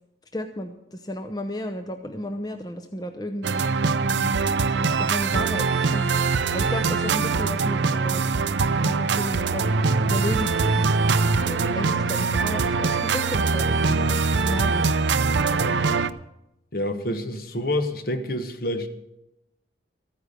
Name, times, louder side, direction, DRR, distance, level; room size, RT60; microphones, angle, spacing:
voice 1, 0.3-3.8 4.1-5.7 5.9-8.2 8.8-10.8 11.4-14.9 15.5-15.8, equal, 20° left, 5 dB, 0.7 m, -33 dB
sound 1, 3.4-16.1, right 4 dB, 80° right, 0.6 m, -23 dB
voice 2, 16.7-18.9, left 1 dB, 55° left, 7 dB, 1.3 m, -27 dB
14.0 x 9.5 x 6.7 m, 0.87 s
head